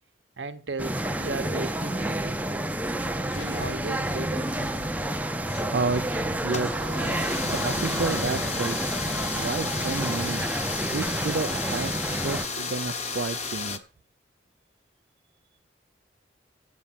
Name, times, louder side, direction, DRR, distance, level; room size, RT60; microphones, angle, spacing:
voice 1, 0.4-2.4 3.3-4.5, right 3 dB, 75° right, 1.0 m, -35 dB
sound 1, 0.8-12.5, right 1 dB, 10° right, 0.6 m, -29 dB
sound 2, 3.2-6.1 6.6-8.6, left 5 dB, 60° left, 0.4 m, -42 dB
voice 2, 5.7-7.1 7.5-9.0 9.3-10.5 10.9-13.8, right 4 dB, 60° right, 0.5 m, -31 dB
sound 3, 6.5-13.8, left 5 dB, 35° left, 1.0 m, -33 dB
8.5 x 8.2 x 7.4 m
head